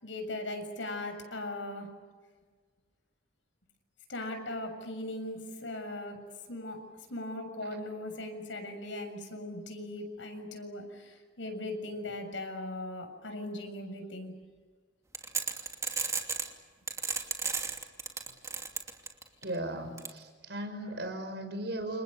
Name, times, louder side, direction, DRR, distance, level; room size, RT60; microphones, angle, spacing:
voice 1, 0.0-1.9 4.1-6.2 6.5-6.8 7.1-14.3, left 1 dB, 80° left, 6 dB, 7.0 m, -39 dB
sound 1, 15.1-16.5 16.9-19.4 20.0-20.1, right 4 dB, 15° right, 2.7 m, -33 dB
voice 2, 19.4-22.0, right 1 dB, 60° right, 7 dB, 5.8 m, -37 dB
30.0 x 28.5 x 6.7 m, 1.5 s
head